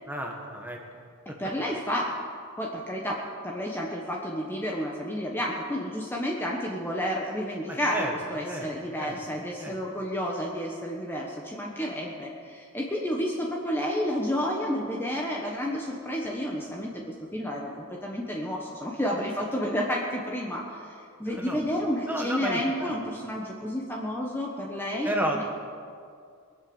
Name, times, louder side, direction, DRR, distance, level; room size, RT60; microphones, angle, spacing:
voice 1, 0.1-0.8 7.7-8.1 8.4-8.7 9.0-9.2 9.6-9.8 21.2-21.6 22.0-22.9 25.1-25.4, right 1 dB, 10° right, 1 dB, 1.7 m, -31 dB
voice 2, 1.4-2.1 2.6-25.4, equal, 10° left, -2 dB, 1.2 m, -31 dB
23.0 x 7.9 x 7.1 m, 2.2 s
head